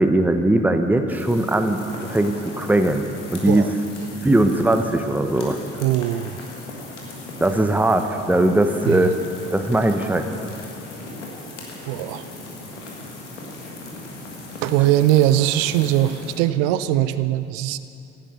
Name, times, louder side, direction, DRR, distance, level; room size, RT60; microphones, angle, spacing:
voice 1, 0.0-1.8 2.1-3.7 4.2-5.6 7.4-9.1 9.5-10.4, right 1 dB, 5° right, 7 dB, 1.0 m, -19 dB
sound 1, 1.1-16.4, left 2 dB, 85° left, 1.7 m, -38 dB
voice 2, 5.8-6.4 8.9-9.1 11.8-12.3 14.6-17.8, right 13 dB, 65° right, 14 dB, 0.6 m, -20 dB
15.0 x 11.0 x 6.8 m, 2.6 s
figure-of-eight pair, 45°, 35 cm